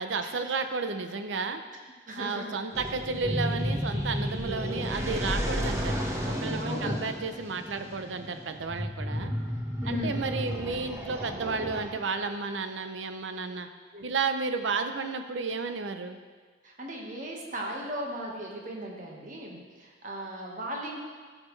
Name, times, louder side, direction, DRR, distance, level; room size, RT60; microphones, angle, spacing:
voice 1, 0.0-1.6 2.2-6.0 6.2-9.3 9.9-13.7 14.0-16.2, right 4 dB, 80° right, 8 dB, 0.6 m, -32 dB
voice 2, 2.1-2.6 6.6-7.0 7.3-7.4 9.8-10.2 13.9-14.0 16.6-21.0, equal, 45° right, -1 dB, 1.4 m, -37 dB
sound 1, 2.7-12.2, equal, 15° right, 1.0 m, -32 dB
14.5 x 6.6 x 3.2 m, 1.5 s
head